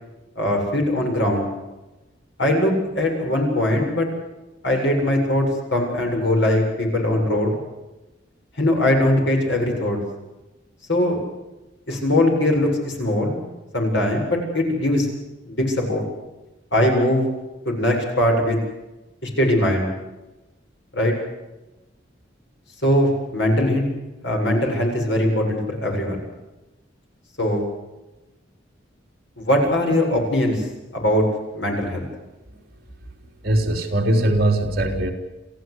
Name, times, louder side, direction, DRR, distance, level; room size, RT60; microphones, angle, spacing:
voice 1, 0.4-1.5 2.4-4.1 4.6-7.6 8.6-10.0 10.9-11.2 11.9-13.4 13.7-15.1 15.5-16.0 16.7-17.3 17.6-18.6 19.2-19.9 20.9-21.1 22.8-23.9 24.2-26.2 27.4-27.6 29.4-30.6 30.9-31.2 31.5-32.1, left 1 dB, 65° left, 1 dB, 7.8 m, -21 dB
voice 2, 33.4-35.1, right 1 dB, 55° right, 2 dB, 3.8 m, -20 dB
27.5 x 15.5 x 8.2 m, 1.0 s
head